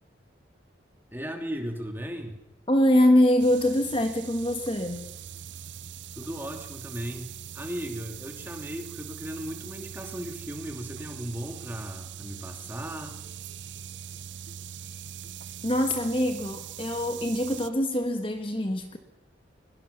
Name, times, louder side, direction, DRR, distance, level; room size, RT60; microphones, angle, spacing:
voice 1, 1.1-2.4 6.1-13.2, equal, 10° right, 4 dB, 2.6 m, -36 dB
voice 2, 2.7-5.1 15.6-19.0, left 1 dB, 30° left, 6 dB, 1.5 m, -24 dB
sound 1, 3.4-17.7, right 9 dB, 75° right, 0.7 m, -42 dB
22.0 x 21.5 x 6.8 m, 0.96 s
head